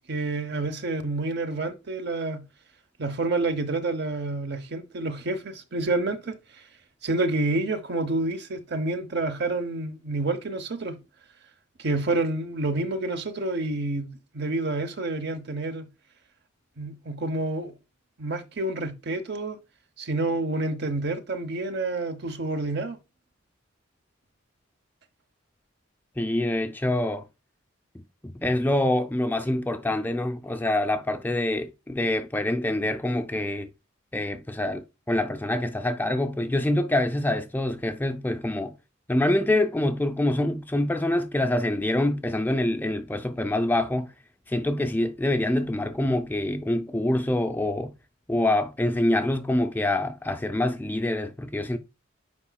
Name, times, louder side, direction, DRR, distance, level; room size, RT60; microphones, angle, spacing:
voice 1, 0.1-2.4 3.0-6.7 7.0-11.0 11.8-15.9 16.8-17.7 18.2-19.6 20.0-23.0, right 2 dB, 50° right, 0.8 m, -28 dB
voice 2, 26.2-27.2 28.2-33.7 34.1-38.7 39.1-44.1 44.5-47.9 48.3-51.8, left 1 dB, 10° left, 0.4 m, -25 dB
8.4 x 5.0 x 2.3 m
head